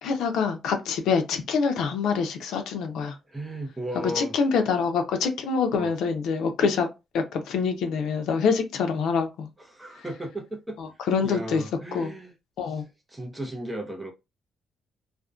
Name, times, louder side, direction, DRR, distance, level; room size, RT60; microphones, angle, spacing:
voice 1, 0.0-3.2 4.1-6.9 7.1-9.5 10.0-10.1 10.8-11.6 11.9-12.1 12.6-12.8, left 5 dB, 85° left, 0.5 m, -25 dB
voice 2, 3.3-4.3 5.7-5.9 9.7-10.8 11.2-12.3 13.1-14.1, right 1 dB, 10° right, 0.6 m, -35 dB
2.5 x 2.1 x 2.3 m
cardioid pair, 175°, 0 cm